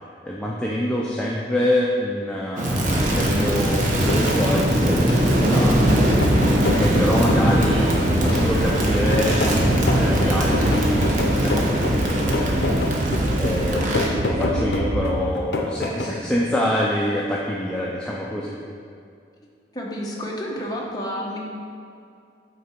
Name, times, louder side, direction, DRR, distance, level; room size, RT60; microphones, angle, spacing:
voice 1, 0.2-5.8 6.7-7.9 8.2-9.4 9.8-11.0 11.4-12.6 13.3-18.5, left 1 dB, 5° left, -5 dB, 0.4 m, -26 dB
Crackle, 2.6-14.1, right 1 dB, 45° right, 1.0 m, -21 dB
sound 1, 3.8-16.2, left 2 dB, 70° left, 0.6 m, -29 dB
sound 2, 5.9-15.3, right 1 dB, 65° right, 0.5 m, -27 dB
voice 2, 19.7-21.4, equal, 20° left, -3 dB, 1.0 m, -30 dB
8.5 x 3.8 x 4.4 m, 2.4 s
head